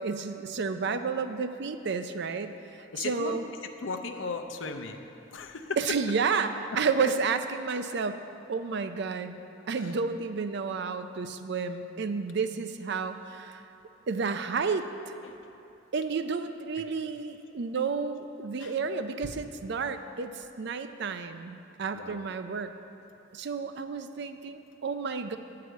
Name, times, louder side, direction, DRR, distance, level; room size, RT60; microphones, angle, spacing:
voice 1, 0.0-3.5 5.8-8.2 8.5-9.4 9.7-13.6 14.1-15.1 15.9-22.7 23.3-25.4, right 5 dB, 60° right, 9 dB, 0.5 m, -31 dB
voice 2, 2.8-3.3 3.8-5.8 9.6-10.0 15.2-15.4 18.6-18.7 21.9-22.2, left 4 dB, 85° left, 6 dB, 0.7 m, -37 dB
9.6 x 4.8 x 7.8 m, 2.8 s
head